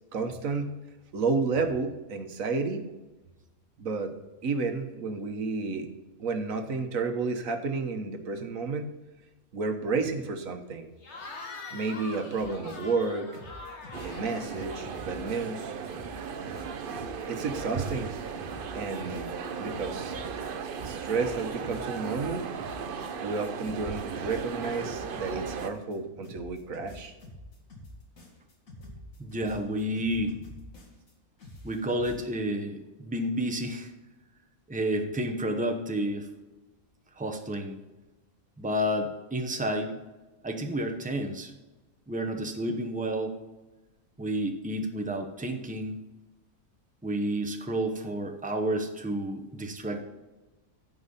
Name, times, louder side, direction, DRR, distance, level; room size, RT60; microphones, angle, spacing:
voice 1, 0.1-0.8 1.1-2.8 3.8-4.1 4.4-5.9 6.2-8.9 9.5-10.9 11.7-13.3 14.0-15.7 17.3-18.1 18.7-19.3 19.6-20.2 20.8-22.5 23.2-27.1, right 4 dB, 70° right, 7 dB, 1.5 m, -31 dB
Cheering / Crowd, 11.0-15.6, left 3 dB, 50° left, 1.7 m, -44 dB
sound 1, 12.4-13.1 13.3-15.6 15.9-20.8 21.1-23.4 23.7-26.0 26.2-31.1 31.4-32.2, left 1 dB, 65° left, 2.4 m, -47 dB
sound 2, 13.9-25.7, right 6 dB, 50° right, 0.7 m, -36 dB
voice 2, 29.2-30.4 31.6-33.9 34.7-36.3 37.2-37.8 38.6-39.9 40.4-41.5 42.1-43.4 44.2-46.0 47.0-50.0, right 1 dB, 5° right, 4 dB, 0.8 m, -30 dB
15.0 x 5.3 x 4.0 m, 1.1 s
omnidirectional pair, 1.5 m